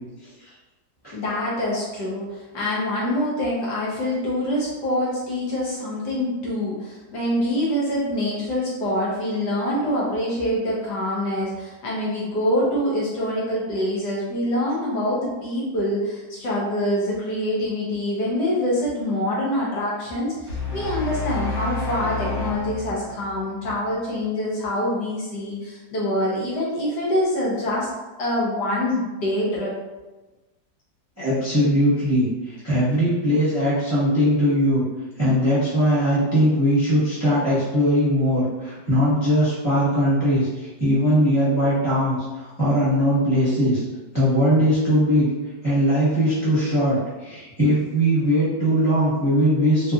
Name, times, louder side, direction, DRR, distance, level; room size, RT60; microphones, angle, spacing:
voice 1, 1.1-27.9 28.2-29.7, left 1 dB, 70° left, -5 dB, 1.3 m, -25 dB
sound 1, 20.5-23.8, left 3 dB, 85° left, 2.0 m, -29 dB
voice 2, 31.2-34.8 35.2-43.8 44.1-45.3 45.6-49.9, equal, 10° right, -11 dB, 0.8 m, -20 dB
4.0 x 2.4 x 2.3 m, 1.1 s
omnidirectional pair, 2.1 m